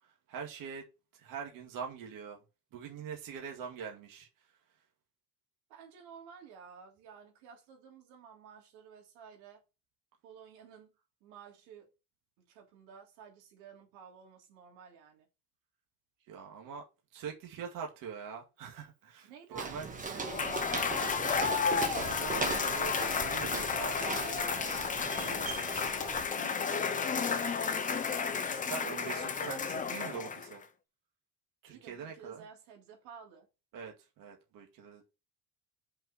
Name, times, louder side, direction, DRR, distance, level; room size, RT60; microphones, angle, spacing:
voice 1, 0.3-0.8 1.1-2.4 2.7-4.3 16.3-16.8 17.1-19.9 21.9-23.9 28.4-30.6 31.6-32.4 33.7-35.1, right 6 dB, 55° right, 2.2 m, -43 dB
voice 2, 5.7-9.6 10.2-10.9 11.2-11.9 12.4-15.3 19.2-21.5 23.7-27.5 31.7-33.5, right 7 dB, 90° right, 3.3 m, -53 dB
Walk footsteps, 19.6-26.3, right 4 dB, 20° right, 1.5 m, -39 dB
Cheering / Applause / Crowd, 20.2-30.6, left 6 dB, 20° left, 0.9 m, -32 dB
sound 1, 25.0-30.0, left 9 dB, 45° left, 1.8 m, -52 dB
5.7 x 5.4 x 6.2 m
cardioid pair, 150°, 39 cm